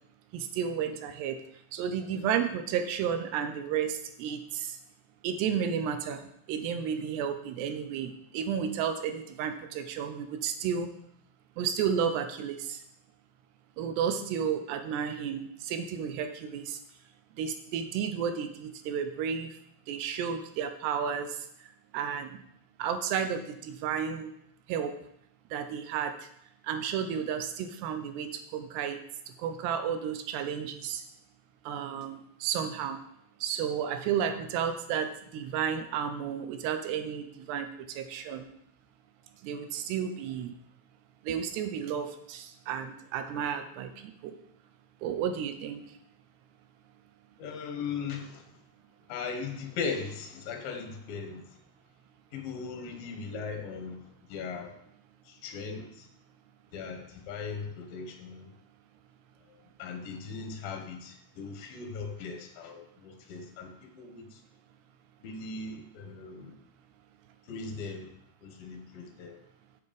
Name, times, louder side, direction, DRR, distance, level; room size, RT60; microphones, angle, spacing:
voice 1, 0.3-1.4 1.7-4.8 5.2-10.9 11.6-12.8 13.8-16.8 17.4-19.5 19.9-21.4 21.9-22.4 22.8-24.3 24.7-24.9 25.5-26.1 26.6-29.0 29.4-31.0 31.7-33.0 33.4-38.5 39.4-40.6 41.2-44.3 45.0-45.8, right 8 dB, 85° right, 8 dB, 3.0 m, -32 dB
voice 2, 47.4-48.4 49.1-51.6 52.3-54.8 55.3-56.1 56.7-58.5 59.5-64.4 65.2-66.5 67.5-68.1 68.4-69.4, left 5 dB, 65° left, 4 dB, 2.8 m, -39 dB
8.1 x 7.5 x 5.1 m, 0.71 s
omnidirectional pair, 4.8 m